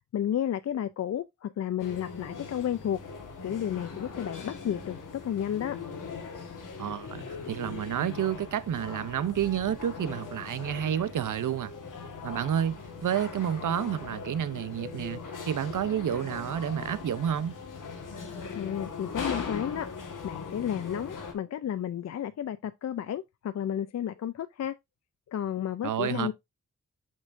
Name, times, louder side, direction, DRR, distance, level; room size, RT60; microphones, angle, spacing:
voice 1, 0.1-3.0 3.4-5.8 18.5-19.9 20.2-24.7 25.3-26.3, left 10 dB, 55° left, 0.4 m, -32 dB
sound 1, 1.8-21.3, left 5 dB, 80° left, 1.7 m, -40 dB
voice 2, 6.8-11.7 12.2-17.6 25.8-26.3, right 9 dB, 75° right, 0.6 m, -30 dB
6.3 x 6.2 x 2.5 m
cardioid pair, 55°, 31 cm